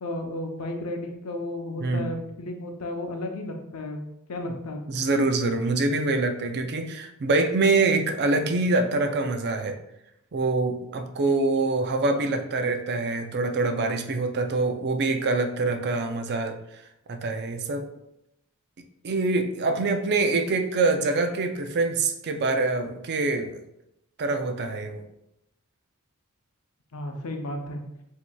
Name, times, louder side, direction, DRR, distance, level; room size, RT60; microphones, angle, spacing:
voice 1, 0.0-4.0 4.3-5.0 26.9-27.8, left 1 dB, 85° left, 3 dB, 0.6 m, -33 dB
voice 2, 1.8-2.1 4.5-4.6 4.9-9.7 10.3-16.6 17.1-17.9 19.0-23.6 24.2-25.0, right 3 dB, 50° right, 6 dB, 0.4 m, -25 dB
7.2 x 2.8 x 2.3 m, 0.82 s
head